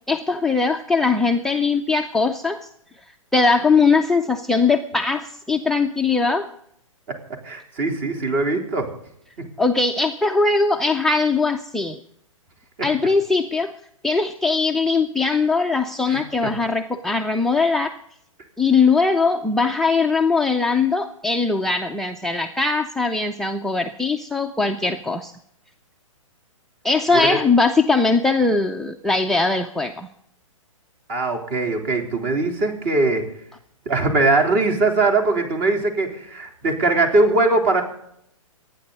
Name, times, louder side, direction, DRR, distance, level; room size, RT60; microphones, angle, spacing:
voice 1, 0.1-2.7 3.3-6.5 9.6-12.0 12.8-13.7 14.0-18.0 18.6-25.3 26.8-30.1, left 4 dB, ahead, 3 dB, 0.5 m, -20 dB
voice 2, 7.4-8.9 9.4-9.5 12.8-12.9 16.1-16.5 27.1-27.4 31.1-33.3 33.9-37.8, right 2 dB, 35° right, 3 dB, 3.6 m, -21 dB
26.5 x 9.8 x 4.0 m, 0.74 s
hypercardioid pair, 125°, 17 cm